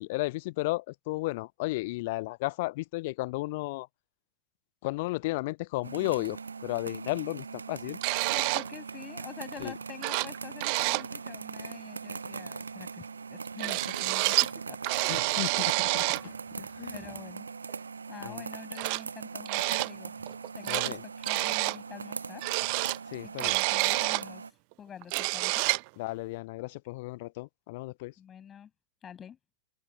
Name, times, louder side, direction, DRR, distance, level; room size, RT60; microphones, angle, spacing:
voice 1, 0.0-3.9 4.8-8.0 9.6-9.7 15.1-17.0 18.2-18.4 20.7-21.0 23.1-23.6 26.0-28.1, left 21 dB, 50° left, 0.9 m, -34 dB
sound 1, 5.8-24.5, right 5 dB, 75° right, 0.9 m, -41 dB
sound 2, 8.0-8.7 9.7-9.8 10.0-10.4 10.6-11.1 13.6-14.5 14.8-16.3 17.7-17.8 18.8-19.0 19.5-19.9 20.3-20.9 21.2-21.8 22.4-24.3 24.7-24.8 25.0-25.9, right 40 dB or more, 45° right, 1.0 m, -28 dB
voice 2, 8.3-15.5 16.1-20.3 20.5-22.9 23.2-24.5 24.8-25.7 28.2-28.7 29.0-29.4, left 8 dB, 25° left, 7.7 m, -47 dB
figure-of-eight pair, 90°, 0 cm